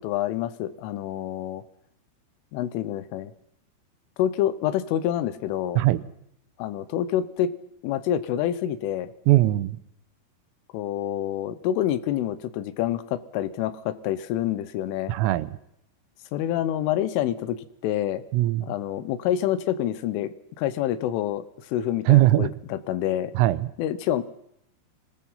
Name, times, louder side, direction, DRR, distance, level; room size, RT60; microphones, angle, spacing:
voice 1, 0.0-1.6 2.5-3.3 4.2-5.8 6.6-7.5 7.8-9.1 10.7-15.1 16.3-18.2 18.6-23.3 23.8-24.4, left 11 dB, 80° left, 15 dB, 3.4 m, -27 dB
voice 2, 9.3-9.8 15.1-15.6 18.3-18.7 22.1-22.5 23.4-23.7, right 16 dB, 85° right, 15 dB, 3.5 m, -20 dB
24.0 x 20.0 x 5.6 m, 0.76 s
omnidirectional pair, 5.8 m